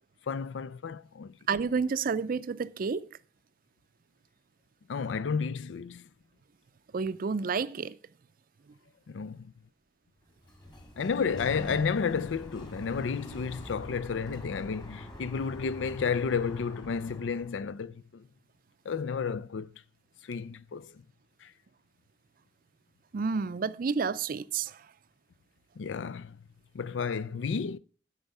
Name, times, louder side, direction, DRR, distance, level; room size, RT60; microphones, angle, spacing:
voice 1, 0.3-1.3 4.9-6.0 9.1-9.5 11.0-18.3 18.9-19.7 20.2-21.0 21.4-21.5 25.8-26.4 26.7-27.8, left 5 dB, 85° left, 0.4 m, -32 dB
voice 2, 1.5-3.1 6.9-8.0 23.1-24.8, right 5 dB, 50° right, 0.4 m, -30 dB
Sliding door, 10.3-17.7, equal, 25° left, 1.9 m, -45 dB
11.5 x 5.6 x 5.4 m
head